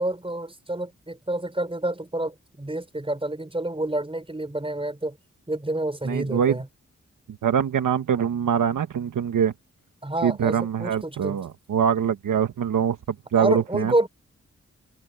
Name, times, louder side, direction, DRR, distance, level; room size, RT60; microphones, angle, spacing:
voice 1, 0.0-5.2 5.5-6.7 10.0-11.4 13.4-14.1, right 1 dB, 15° right, 4.7 m, -28 dB
voice 2, 6.1-6.6 7.4-9.5 10.2-13.0 13.3-13.9, right 8 dB, 80° right, 1.6 m, -23 dB
open air
supercardioid pair, 40°, 31 cm